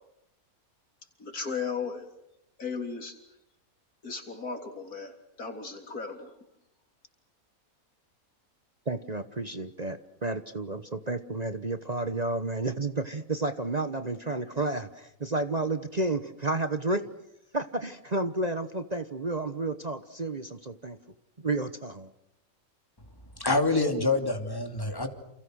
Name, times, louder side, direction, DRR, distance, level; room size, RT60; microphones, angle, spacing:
voice 1, 1.2-2.1 2.6-3.1 4.0-5.1 5.4-6.3, left 5 dB, 85° left, 5 dB, 4.0 m, -35 dB
voice 2, 8.9-17.1 17.5-21.0 21.4-22.1, right 2 dB, 30° right, 10 dB, 1.1 m, -31 dB
voice 3, 23.4-25.1, left 3 dB, 15° left, 5 dB, 2.8 m, -26 dB
29.5 x 29.0 x 6.4 m, 0.78 s
omnidirectional pair, 1.5 m